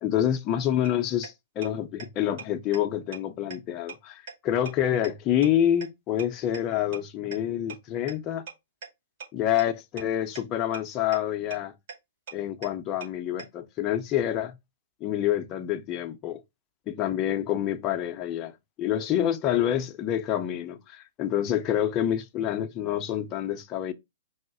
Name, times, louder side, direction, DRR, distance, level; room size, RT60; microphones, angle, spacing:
voice 1, 0.0-8.5 9.3-11.7 12.3-14.5 15.0-16.4 16.9-23.9, left 11 dB, 30° left, 0.6 m, -27 dB
sound 1, 0.8-0.9 1.2-1.3 1.6-1.7 2.0-2.1 2.4-2.5 2.7-2.8 3.1-3.2 3.5-3.6 3.9-4.0 4.3-4.4 4.7-4.8 5.0-5.1 5.4-5.5 5.8-5.9 6.2-6.3 6.5-6.6 6.9-7.0 7.3-7.4 7.7-7.8 8.1-8.2 8.5-8.6 8.8-8.9 9.2-9.3 9.6-9.7 10.0-10.1 10.4-10.5 10.7-10.8 11.1-11.2 11.5-11.6 11.9-12.0 12.3-12.4 12.6-12.7 13.0-13.1 13.4-13.5, right 6 dB, 55° right, 2.3 m, -38 dB
4.8 x 2.0 x 4.7 m
hypercardioid pair, 120°, 0 cm